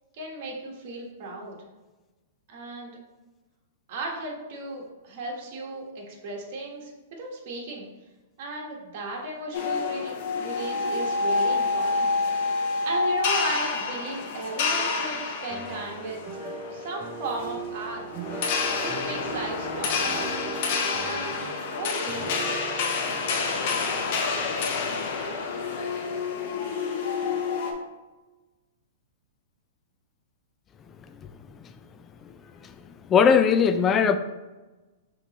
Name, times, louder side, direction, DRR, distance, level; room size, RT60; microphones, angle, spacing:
voice 1, 0.1-1.6 2.5-3.0 3.9-7.8 8.4-12.1 12.8-16.2 16.7-18.0 18.8-20.6 21.0-22.5, right 2 dB, 50° right, -1 dB, 1.3 m, -35 dB
sound 1, 9.5-27.7, left 4 dB, 50° left, 0.8 m, -28 dB
sound 2, 15.5-25.4, right 4 dB, 25° right, 0.6 m, -40 dB
voice 2, 33.1-34.2, left 6 dB, 20° left, 10 dB, 0.3 m, -18 dB
5.9 x 3.0 x 3.0 m, 1.2 s
hypercardioid pair, 140°, 0 cm